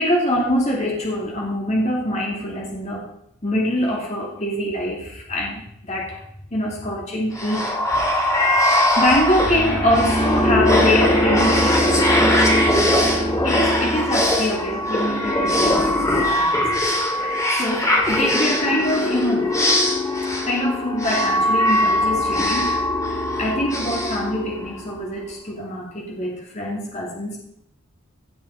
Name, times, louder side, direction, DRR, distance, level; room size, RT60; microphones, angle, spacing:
voice 1, 0.0-3.1 3.4-6.2 6.5-7.8 8.1-8.6 9.0-12.4 12.7-16.7 17.2-19.6 20.4-22.7 23.1-27.4, left 1 dB, 35° left, -2 dB, 2.6 m, -24 dB
sound 1, 7.3-25.0, left 1 dB, 15° left, 2.2 m, -20 dB
17.0 x 6.3 x 4.2 m, 0.74 s
head